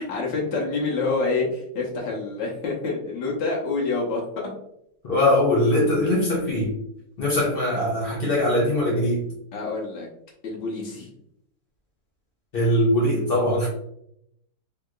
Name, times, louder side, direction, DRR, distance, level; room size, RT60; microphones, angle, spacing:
voice 1, 0.0-4.5 9.5-10.1 10.4-11.1, left 3 dB, 85° left, -3 dB, 1.5 m, -27 dB
voice 2, 5.0-6.7 7.2-9.3 12.5-13.7, left 1 dB, 70° left, -3 dB, 0.5 m, -21 dB
3.5 x 2.8 x 2.3 m, 0.75 s
omnidirectional pair, 1.9 m